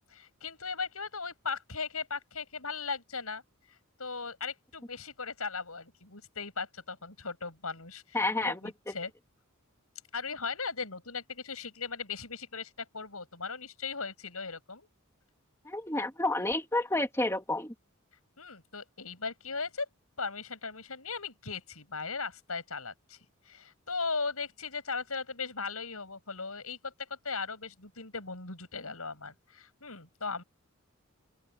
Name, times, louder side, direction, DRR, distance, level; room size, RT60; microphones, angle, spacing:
voice 1, 0.1-3.4 3.7-8.2 8.4-9.1 10.1-14.9 18.4-19.9 20.2-23.2 23.5-30.4, left 4 dB, 85° left, 7.6 m, -38 dB
voice 2, 8.1-8.6 8.9-9.0 15.7-17.7, left 2 dB, 10° left, 1.9 m, -30 dB
open air
head